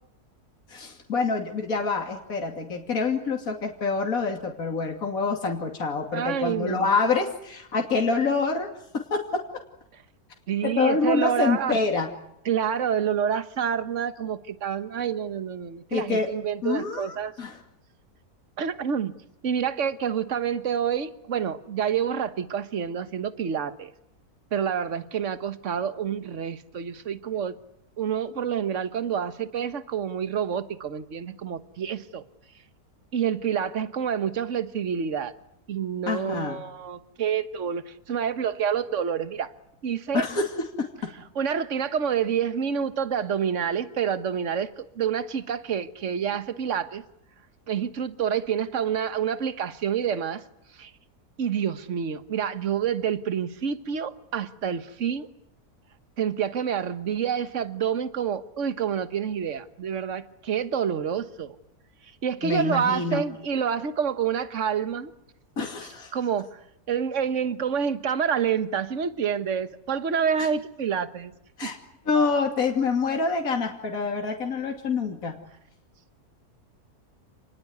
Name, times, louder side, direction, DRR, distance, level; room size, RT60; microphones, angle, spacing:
voice 1, 0.7-8.7 9.1-9.4 10.6-12.1 15.9-16.3 16.6-17.6 36.1-36.6 40.1-40.5 40.8-40.9 62.4-63.2 65.6-66.1 70.4-70.5 71.6-71.8 72.1-75.3, left 4 dB, 60° left, 2 dB, 3.1 m, -26 dB
voice 2, 6.1-6.9 10.5-11.8 12.4-17.3 18.6-19.1 19.4-23.9 24.5-27.6 28.0-32.2 33.1-35.3 35.7-39.5 39.8-40.2 41.3-47.0 47.7-50.4 50.7-50.9 51.4-55.3 56.2-61.6 62.2-65.1 65.6-65.7 66.1-66.6 66.9-71.3 71.6-71.7, right 8 dB, 50° right, 11 dB, 1.6 m, -28 dB
29.0 x 19.5 x 9.5 m, 0.80 s
omnidirectional pair, 1.7 m